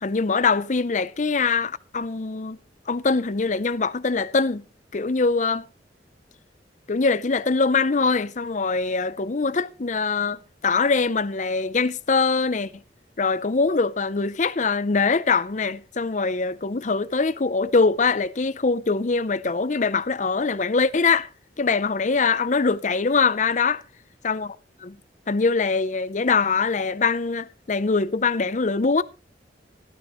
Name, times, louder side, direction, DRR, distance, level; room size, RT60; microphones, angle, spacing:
voice 1, 0.0-2.6 2.9-4.6 4.9-5.7 6.9-12.8 13.2-21.3 21.6-23.8 24.2-24.6 24.8-25.0 25.3-29.0, left 4 dB, 40° left, 0.6 m, -23 dB
14.0 x 13.0 x 3.1 m
head